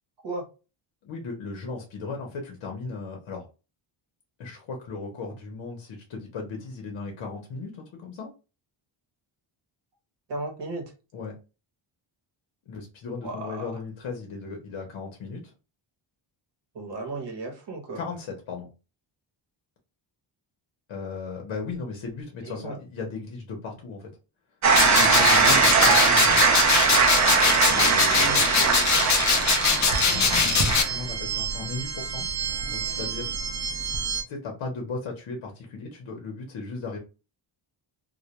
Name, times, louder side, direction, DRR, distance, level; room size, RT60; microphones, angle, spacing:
voice 1, 1.0-3.5 4.4-8.3 11.1-11.4 12.7-15.5 18.0-18.7 20.9-24.1 24.9-26.4 27.6-28.4 30.0-32.3 32.7-33.3 34.3-37.0, left 4 dB, 65° left, 1 dB, 0.8 m, -36 dB
voice 2, 10.3-10.9 13.2-13.7 16.7-18.0 22.4-22.8 28.1-28.8, right 2 dB, 55° right, 2 dB, 1.0 m, -35 dB
sound 1, 24.6-34.2, right 5 dB, 40° right, 0.4 m, -22 dB
sound 2, 24.7-30.8, left 5 dB, 40° left, 0.4 m, -22 dB
2.2 x 2.1 x 2.8 m, 0.32 s
wide cardioid pair, 140°, 50 cm